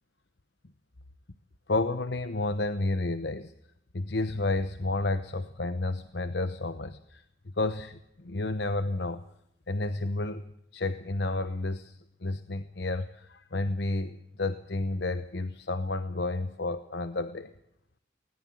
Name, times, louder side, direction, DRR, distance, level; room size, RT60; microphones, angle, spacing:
voice 1, 1.7-3.5 3.9-7.2 7.6-9.2 9.7-10.4 10.7-17.5, left 2 dB, 65° left, 11 dB, 1.0 m, -31 dB
19.5 x 18.5 x 7.8 m, 0.74 s
head